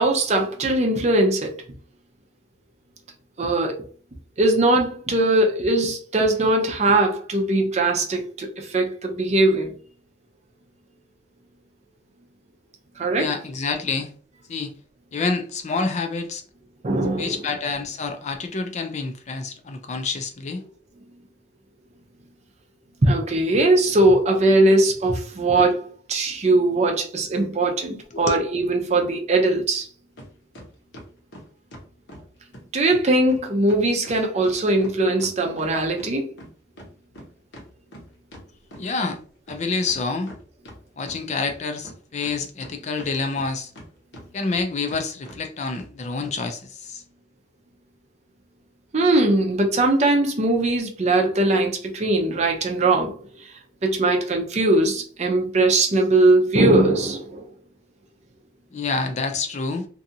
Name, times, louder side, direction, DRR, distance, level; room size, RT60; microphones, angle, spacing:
voice 1, 0.0-1.5 3.4-3.8 4.4-9.7 13.0-13.3 16.8-17.4 23.0-29.9 32.7-36.3 48.9-53.5 53.8-57.5, right 2 dB, 40° right, 0.5 m, -20 dB
voice 2, 13.2-14.1 14.5-14.7 15.1-16.4 17.2-20.6 28.1-28.4 38.8-39.2 39.5-40.3 41.0-43.7 44.3-47.0 58.7-59.9, left 4 dB, 40° left, 0.4 m, -27 dB
sound 1, 30.2-30.3 30.5-32.3 32.5-32.6 32.9-33.0 33.3-33.4 33.7-36.1 36.4-39.2 39.5-39.6 39.9-40.8 41.1-41.9 42.2-43.9 44.1-44.6 44.9-45.0 45.3-45.4 45.7-45.9 46.2-46.3, equal, 80° left, 1.0 m, -43 dB
2.6 x 2.4 x 2.7 m
head